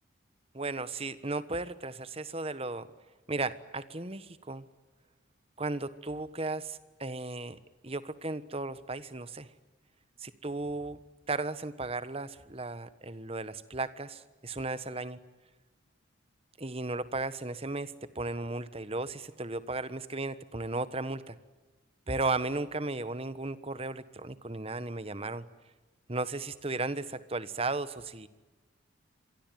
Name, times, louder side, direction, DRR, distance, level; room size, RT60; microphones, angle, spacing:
voice 1, 0.5-2.9 3.3-4.7 5.6-7.6 7.8-9.5 10.2-11.0 11.3-15.2 16.6-21.4 22.1-25.4 26.1-28.3, right 2 dB, 30° right, 14 dB, 1.3 m, -35 dB
27.0 x 23.0 x 9.3 m, 1.2 s
head